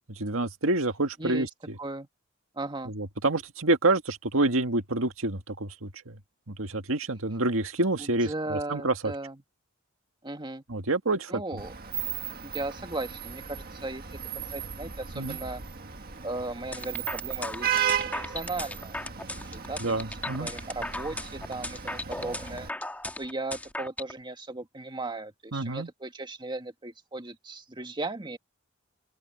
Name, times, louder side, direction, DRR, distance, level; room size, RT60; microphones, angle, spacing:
voice 1, 0.2-1.5 2.9-6.2 6.5-8.9 10.7-11.3 15.2-15.4 19.8-20.5 25.5-25.9, right 2 dB, 85° right, 1.8 m, -27 dB
voice 2, 1.2-1.5 1.8-2.1 2.5-2.9 8.0-9.4 10.2-10.6 11.3-11.7 12.4-14.2 14.5-15.6 16.2-22.7 23.2-28.4, right 2 dB, 25° right, 1.8 m, -37 dB
Vehicle horn car horn honking / Traffic noise roadway noise, 11.6-22.7, right 9 dB, 50° right, 1.7 m, -35 dB
sound 1, 16.7-24.1, left 1 dB, 10° left, 1.9 m, -36 dB
open air
head